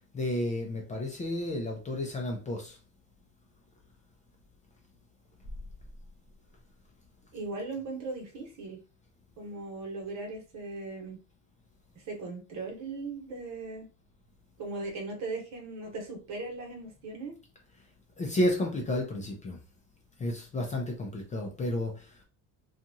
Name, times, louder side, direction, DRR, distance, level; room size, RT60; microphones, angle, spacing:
voice 1, 0.1-2.8 18.2-19.6 20.2-22.1, left 1 dB, 20° left, 1 dB, 0.4 m, -31 dB
voice 2, 7.3-8.8 9.4-11.2 11.9-13.9 14.6-17.3, right 3 dB, 55° right, 2 dB, 1.0 m, -38 dB
2.8 x 2.4 x 2.6 m, 0.33 s
cardioid pair, 170°, 33 cm